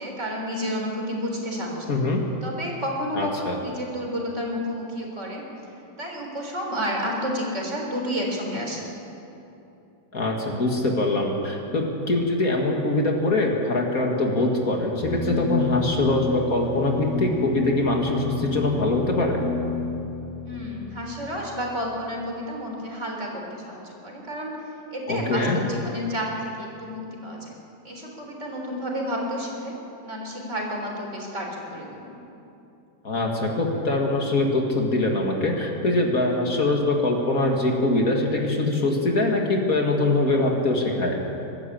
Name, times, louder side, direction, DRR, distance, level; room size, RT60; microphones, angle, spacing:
voice 1, 0.0-1.9 2.4-5.4 6.0-8.8 20.4-24.5 24.9-27.5 27.8-29.7 30.0-32.1, equal, 40° right, 0 dB, 4.1 m, -31 dB
voice 2, 1.9-2.2 3.1-3.6 10.1-19.4 25.1-25.6 33.0-41.2, left 2 dB, 50° left, 0 dB, 2.4 m, -23 dB
sound 1, 15.0-22.2, left 4 dB, ahead, 3.0 m, -30 dB
22.5 x 13.5 x 8.7 m, 2.8 s
omnidirectional pair, 1.9 m